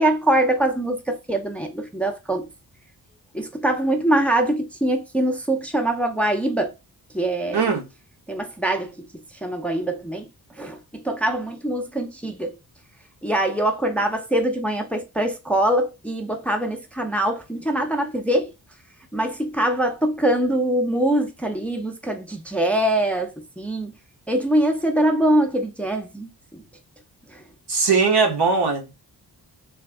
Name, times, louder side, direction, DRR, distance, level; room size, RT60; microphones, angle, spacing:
voice 1, 0.0-2.5 3.3-6.7 7.1-7.6 8.3-9.1 9.4-10.3 10.6-12.6 13.2-18.5 19.1-23.9 24.3-26.6 27.3-27.4, right 1 dB, 5° left, 0.5 m, -23 dB
voice 2, 7.5-7.8 27.7-29.0, right 4 dB, 75° right, 1.4 m, -20 dB
3.4 x 2.8 x 3.5 m
wide cardioid pair, 140°, 39 cm